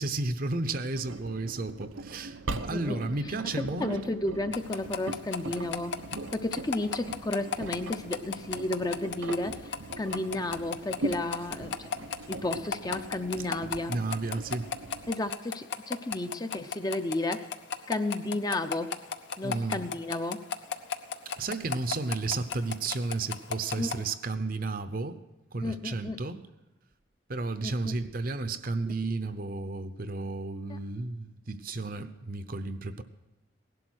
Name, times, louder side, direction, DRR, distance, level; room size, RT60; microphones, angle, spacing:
voice 1, 0.0-4.0 13.9-14.7 19.4-19.8 21.4-25.2 25.5-26.4 27.3-33.0, right 3 dB, 45° right, 11 dB, 0.7 m, -33 dB
Engine, 0.9-15.1, right 2 dB, 90° right, 0.8 m, -41 dB
voice 2, 3.6-6.0 6.3-13.9 15.1-17.5 17.9-18.9 19.4-20.4 23.8-24.0 25.6-26.2 27.6-27.9 30.7-30.8, left 2 dB, 20° left, 8 dB, 0.6 m, -32 dB
sound 1, 4.5-24.0, left 7 dB, 65° left, 0.8 m, -34 dB
17.5 x 11.5 x 6.3 m, 1.0 s
head